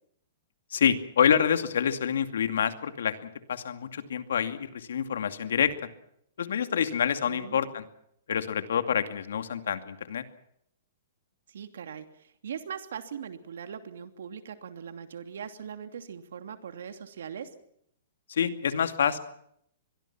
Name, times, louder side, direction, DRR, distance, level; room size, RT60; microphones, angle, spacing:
voice 1, 0.7-5.9 6.4-7.8 8.3-10.2 18.3-19.2, left 8 dB, 80° left, 9 dB, 2.4 m, -27 dB
voice 2, 7.3-7.6 11.5-12.0 12.4-17.5, right 7 dB, 80° right, 8 dB, 2.8 m, -40 dB
25.0 x 22.0 x 6.0 m, 0.71 s
hypercardioid pair, 155°, 0 cm